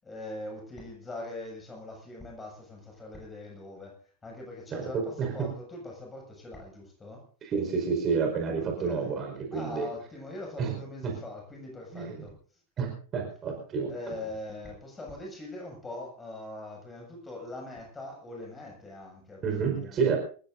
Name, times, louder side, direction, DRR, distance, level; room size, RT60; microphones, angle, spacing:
voice 1, 0.0-7.3 8.6-9.2 9.5-12.4 13.9-20.2, left 2 dB, 15° left, 0 dB, 6.9 m, -42 dB
voice 2, 4.7-5.5 7.4-9.9 10.6-10.8 11.0-11.1 11.9-12.2 12.8-14.2 19.4-20.2, right 5 dB, 25° right, 2 dB, 4.9 m, -30 dB
27.5 x 15.5 x 2.7 m, 0.41 s
figure-of-eight pair, 90°, 0 cm